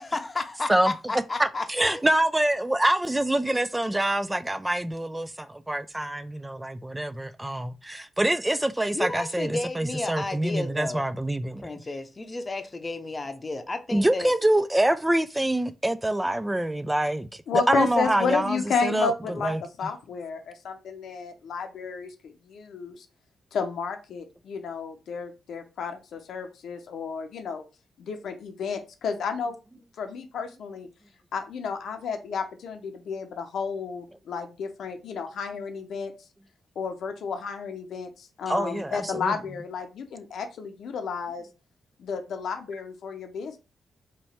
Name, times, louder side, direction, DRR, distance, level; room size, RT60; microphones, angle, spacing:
voice 1, 0.0-1.7 8.9-11.0 11.6-14.3, left 2 dB, 30° left, 0.7 m, -32 dB
voice 2, 0.7-11.7 13.9-19.6 38.5-39.4, right 1 dB, 15° right, 0.3 m, -26 dB
voice 3, 17.5-19.5 19.8-22.1 22.5-23.1 23.5-27.6 28.0-29.6 30.0-30.9 31.3-36.1 36.8-41.5 42.0-43.6, left 5 dB, 75° left, 0.6 m, -32 dB
3.1 x 3.0 x 4.2 m
supercardioid pair, 55°, 0 cm